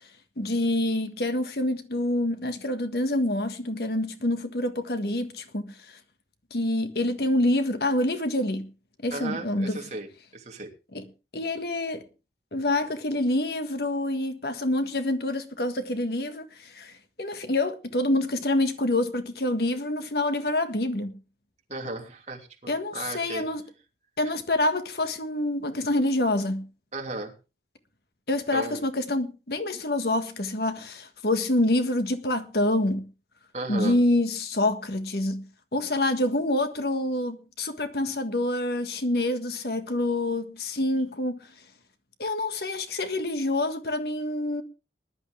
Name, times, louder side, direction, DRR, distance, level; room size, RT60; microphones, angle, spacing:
voice 1, 0.4-5.7 6.5-8.7 9.0-9.8 10.9-11.0 11.3-12.0 12.5-16.9 17.2-21.1 22.7-23.6 24.2-26.6 28.3-33.1 33.7-35.4 35.7-41.4 42.2-44.6, left 1 dB, 60° left, 1.6 m, -26 dB
voice 2, 9.1-10.7 21.7-23.5 26.9-27.3 28.5-28.8 33.5-34.0, right 2 dB, 40° right, 3.1 m, -35 dB
20.0 x 11.5 x 3.4 m
head